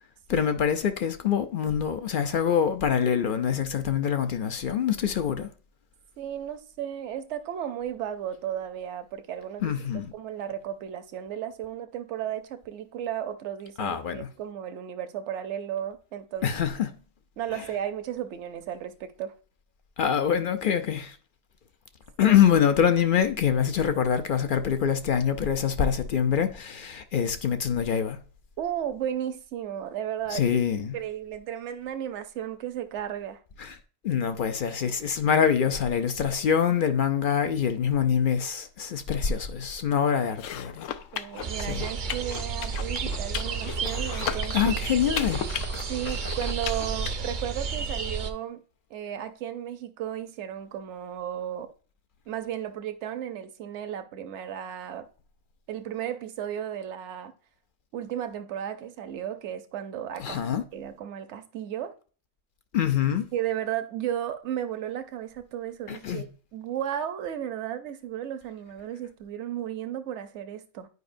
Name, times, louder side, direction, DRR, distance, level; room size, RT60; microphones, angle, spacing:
voice 1, 0.3-5.5 9.6-10.1 13.8-14.3 16.4-16.9 20.0-21.2 22.2-28.2 30.3-31.0 33.6-33.8 34.0-40.9 41.6-41.8 44.5-45.4 60.2-60.6 62.7-63.3 65.9-66.3, left 8 dB, 60° left, 0.5 m, -25 dB
voice 2, 6.2-9.7 10.1-16.5 17.4-19.3 22.2-22.4 28.6-30.6 30.9-33.4 41.1-44.7 45.9-48.6 48.9-51.7 52.3-55.1 55.7-57.3 57.9-60.4 60.7-61.9 63.3-66.3 66.5-70.9, right 10 dB, 65° right, 1.0 m, -34 dB
sound 1, 40.3-47.1, left 9 dB, 75° left, 0.9 m, -36 dB
sound 2, 41.4-48.3, right 5 dB, 50° right, 0.6 m, -31 dB
9.3 x 5.1 x 2.5 m
omnidirectional pair, 1.4 m